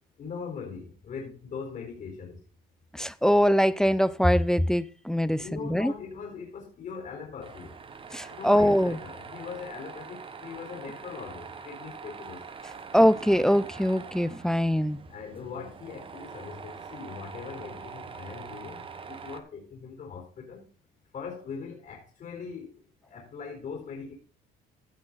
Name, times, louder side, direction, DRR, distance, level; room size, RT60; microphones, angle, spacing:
voice 1, 0.2-2.4 5.3-7.7 8.3-12.4 15.1-20.6 21.1-24.1, left 5 dB, 50° left, 4.1 m, -41 dB
voice 2, 2.9-5.9 8.1-9.0 12.9-15.0, equal, 5° left, 0.5 m, -23 dB
Tools, 7.4-19.4, right 5 dB, 30° right, 1.2 m, -44 dB
15.5 x 5.9 x 4.1 m
cardioid pair, 110°, 17 cm